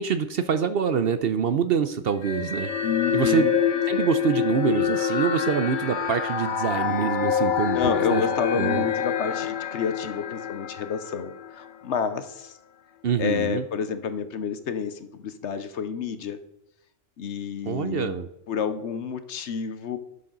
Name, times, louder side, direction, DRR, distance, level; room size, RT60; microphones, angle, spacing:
voice 1, 0.0-2.7 3.1-3.5 3.9-8.2 8.5-8.8 13.0-13.6 17.7-18.3, right 7 dB, 60° right, 10 dB, 0.7 m, -25 dB
sound 1, 2.2-11.7, left 8 dB, 50° left, 0.7 m, -26 dB
voice 2, 2.8-3.5 7.7-12.6 13.2-16.4 17.2-18.2 18.5-20.0, left 7 dB, 65° left, 11 dB, 1.0 m, -29 dB
11.0 x 7.0 x 3.9 m, 0.87 s
omnidirectional pair, 1.3 m